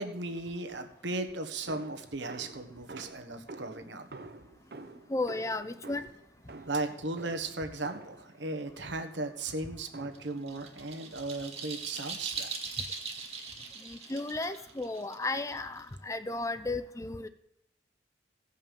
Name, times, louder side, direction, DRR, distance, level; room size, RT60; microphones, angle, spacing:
voice 1, 0.0-4.1 6.7-12.5, right 2 dB, 80° right, 7 dB, 1.4 m, -36 dB
sound 1, 1.7-8.3 8.8-9.3 9.9-10.4, right 2 dB, 55° right, 0.8 m, -48 dB
voice 2, 5.1-6.1 13.8-17.3, left 2 dB, 15° left, 11 dB, 0.5 m, -34 dB
sound 2, 10.1-15.9, right 5 dB, 35° right, 1.6 m, -40 dB
16.0 x 5.5 x 6.9 m, 0.82 s
head